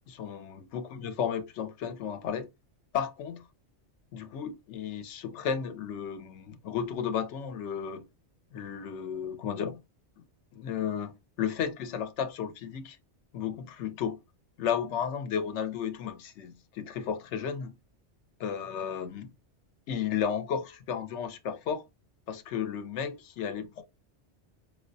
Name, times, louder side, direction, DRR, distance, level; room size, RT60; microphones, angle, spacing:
voice 1, 0.1-2.5 2.9-3.4 4.1-8.0 8.5-9.8 10.5-13.0 13.3-14.2 14.6-17.7 18.4-19.3 19.9-21.8 22.3-23.8, left 7 dB, 80° left, 0.9 m, -33 dB
4.7 x 2.1 x 2.5 m
omnidirectional pair, 1.2 m